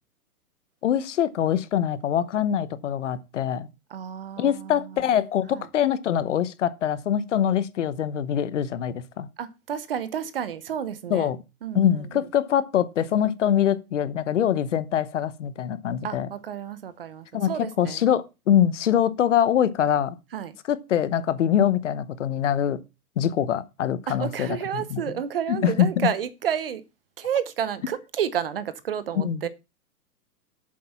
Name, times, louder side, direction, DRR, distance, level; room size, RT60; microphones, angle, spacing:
voice 1, 0.8-3.7 4.4-9.3 11.1-11.4 11.7-16.3 17.3-20.2 20.7-22.8 23.2-25.0 25.5-26.1 29.2-29.5, left 10 dB, 50° left, 0.9 m, -24 dB
voice 2, 3.9-4.8 5.5-5.6 9.4-11.3 11.6-11.8 16.0-18.0 20.3-20.6 24.1-26.8 27.2-29.5, right 9 dB, 40° right, 0.8 m, -30 dB
8.5 x 7.5 x 5.7 m
hypercardioid pair, 170°, 46 cm